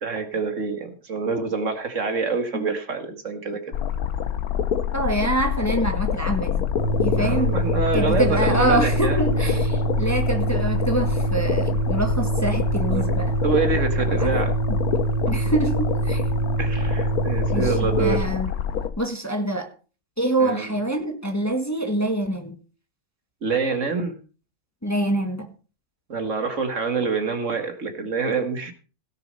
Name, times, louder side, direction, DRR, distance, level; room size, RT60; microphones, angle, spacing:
voice 1, 0.0-3.7 7.2-9.7 12.9-13.0 13.4-14.5 15.3-15.5 16.6-18.3 20.4-20.8 23.4-24.2 26.1-28.7, right 4 dB, 55° right, 7 dB, 2.0 m, -26 dB
sound 1, 3.7-18.9, left 9 dB, 80° left, 1.5 m, -26 dB
voice 2, 4.9-6.7 7.0-7.5 7.9-13.3 14.2-14.3 15.3-16.2 17.5-17.7 18.0-18.5 19.0-19.7 20.2-22.5 24.8-25.5, right 1 dB, 10° left, 4 dB, 1.6 m, -25 dB
sound 2, 6.8-18.2, right 4 dB, 10° right, 1.9 m, -25 dB
17.0 x 6.8 x 5.4 m, 0.36 s
omnidirectional pair, 1.5 m